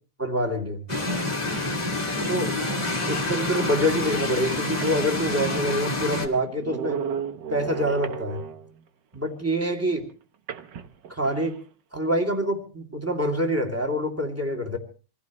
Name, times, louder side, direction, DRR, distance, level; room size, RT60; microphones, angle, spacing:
voice 1, 0.2-0.8 2.3-2.5 3.1-7.0 7.5-8.4 9.1-10.1 11.1-11.6 11.9-14.8, equal, 5° right, 2 dB, 2.4 m, -26 dB
sound 1, 0.9-6.3, left 2 dB, 15° left, 1.5 m, -27 dB
sound 2, 4.7-8.8 10.5-11.6, right 7 dB, 80° right, 1.0 m, -35 dB
27.0 x 16.0 x 3.1 m, 0.36 s
omnidirectional pair, 3.4 m